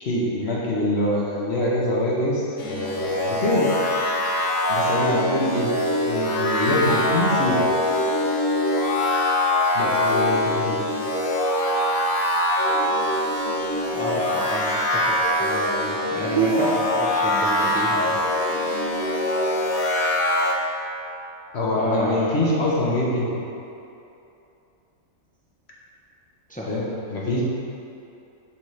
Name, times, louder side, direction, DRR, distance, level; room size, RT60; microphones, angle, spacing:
voice 1, 0.0-3.7 4.7-5.7 6.1-7.7 9.7-10.8 21.5-23.3 26.7-27.4, left 1 dB, 55° left, -5 dB, 1.3 m, -24 dB
sound 1, 2.6-20.5, left 1 dB, 85° left, 1.3 m, -23 dB
voice 2, 13.9-18.2 21.8-22.4 26.5-26.7, equal, 10° left, -5 dB, 0.6 m, -30 dB
sound 2, 16.4-19.8, right 7 dB, 55° right, 0.5 m, -29 dB
10.0 x 4.2 x 3.2 m, 2.8 s
omnidirectional pair, 1.4 m